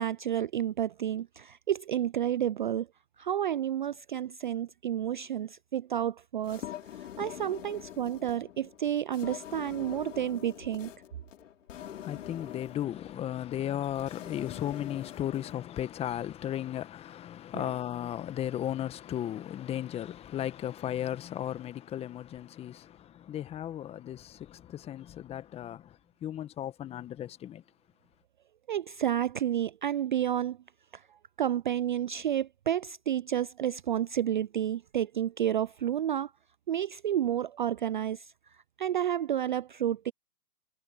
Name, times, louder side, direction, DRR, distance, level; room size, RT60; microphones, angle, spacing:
voice 1, 0.0-2.9 3.2-6.6 7.0-10.9 17.5-17.7 28.7-30.6 30.9-31.0 31.4-36.3 36.7-38.3 38.8-40.1, right 10 dB, 30° right, 0.6 m, -30 dB
sound 1, 6.4-15.9, left 11 dB, 50° left, 3.3 m, -45 dB
voice 2, 11.7-27.6, left 11 dB, 10° left, 1.4 m, -35 dB
hypercardioid pair, 135°, 48 cm